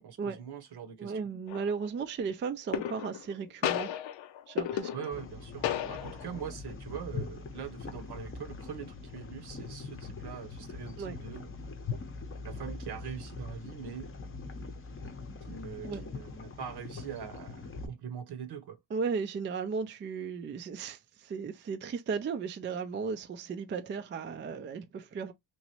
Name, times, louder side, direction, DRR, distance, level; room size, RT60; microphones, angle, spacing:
voice 1, 0.0-1.1 4.9-11.5 12.4-14.1 15.5-18.8, right 8 dB, 60° right, 0.9 m, -42 dB
voice 2, 1.0-3.9 4.5-4.9 11.0-11.2 15.8-16.0 18.9-25.3, right 5 dB, 30° right, 0.3 m, -35 dB
sound 1, 1.5-1.9 2.7-3.3 3.6-5.3 5.6-6.4, left 11 dB, 90° left, 0.6 m, -34 dB
sound 2, 5.1-17.9, left 4 dB, 30° left, 0.7 m, -42 dB
3.0 x 2.6 x 2.8 m
cardioid pair, 85°, 45 cm